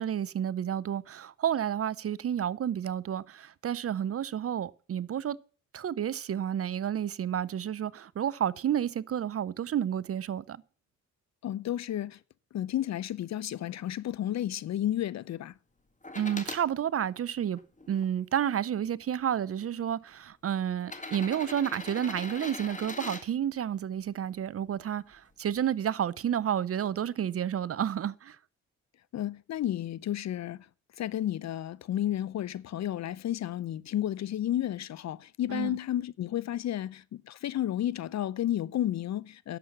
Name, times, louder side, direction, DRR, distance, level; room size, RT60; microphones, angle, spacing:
voice 1, 0.0-5.4 5.7-10.6 16.2-17.6 17.9-28.4 35.5-35.8, right 9 dB, 40° right, 0.6 m, -30 dB
voice 2, 11.4-12.2 12.5-15.5 29.1-30.6 31.0-39.6, left 12 dB, 45° left, 0.6 m, -32 dB
sound 1, 16.0-16.6 17.4-18.4 19.4-19.5 20.8-23.2 25.1-25.2, left 2 dB, 20° left, 2.0 m, -41 dB
11.0 x 7.3 x 7.1 m
hypercardioid pair, 50°, 38 cm